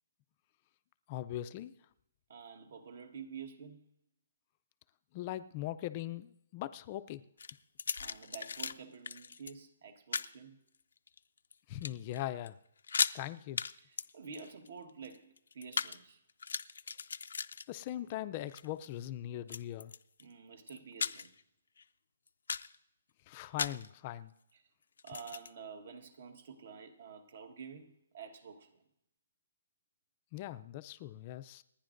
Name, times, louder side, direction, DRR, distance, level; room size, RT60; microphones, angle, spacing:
voice 1, 1.1-1.7 5.1-7.2 11.7-12.6 13.1-13.6 17.7-19.9 23.3-24.3 30.3-31.6, left 13 dB, 25° left, 0.4 m, -40 dB
voice 2, 2.3-3.8 8.0-10.6 13.8-16.2 20.2-21.3 24.5-24.6 25.0-28.8, right 6 dB, 50° right, 1.3 m, -49 dB
sound 1, 7.4-8.7 9.0-9.5 10.1-10.3 11.0-11.5 11.8-12.2 12.5-12.6 12.8-13.2 13.6-13.7 14.0-16.0 16.3-18.1 18.5-18.9 19.5-20.2 20.7-21.4 21.8-21.9 22.3-22.7 23.6-23.9 25.0-25.5, left 5 dB, 80° left, 0.5 m, -37 dB
29.0 x 10.0 x 2.6 m
hypercardioid pair, 175°, 0 cm